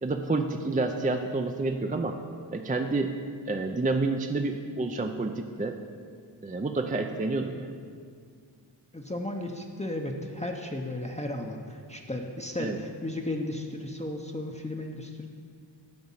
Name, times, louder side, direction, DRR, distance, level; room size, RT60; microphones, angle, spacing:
voice 1, 0.0-2.2 2.5-3.2 3.5-5.8 6.4-7.7 12.6-12.8, right 3 dB, 20° right, 5 dB, 0.5 m, -29 dB
voice 2, 8.9-15.3, left 1 dB, 15° left, 1 dB, 0.7 m, -34 dB
9.5 x 5.0 x 7.3 m, 2.2 s
wide cardioid pair, 60°, 45 cm